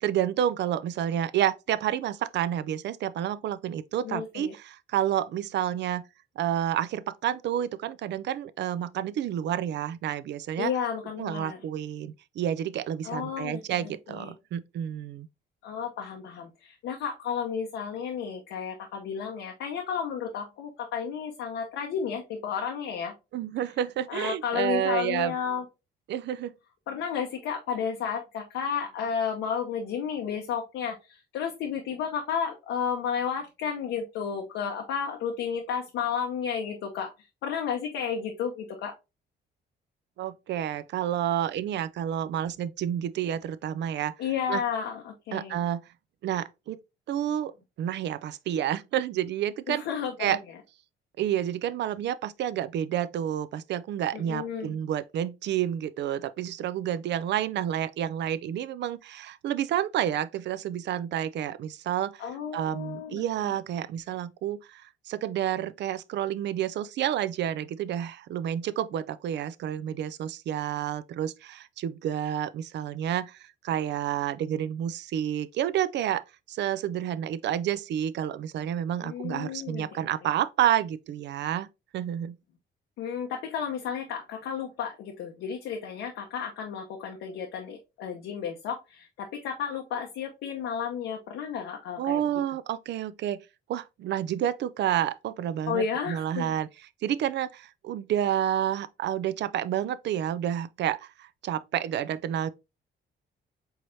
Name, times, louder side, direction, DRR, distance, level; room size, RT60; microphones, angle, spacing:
voice 1, 0.0-6.0 6.4-10.7 11.2-15.3 23.3-25.3 26.1-26.5 40.2-44.1 44.5-44.6 45.3-45.9 46.2-46.8 47.1-47.5 47.8-49.8 50.2-50.4 51.2-62.2 62.5-76.2 76.5-81.7 81.9-82.4 92.0-93.4 93.7-96.7 97.0-102.5, right 11 dB, 65° right, 0.4 m, -29 dB
voice 2, 4.0-4.5 10.6-11.6 13.0-14.3 15.6-23.1 24.1-25.7 26.9-37.1 37.4-38.9 44.2-45.6 49.7-50.4 54.1-54.8 62.2-63.6 79.0-80.1 83.0-92.2 95.7-96.5, left 7 dB, 85° left, 0.8 m, -32 dB
4.6 x 3.2 x 2.6 m
cardioid pair, 90°, 20 cm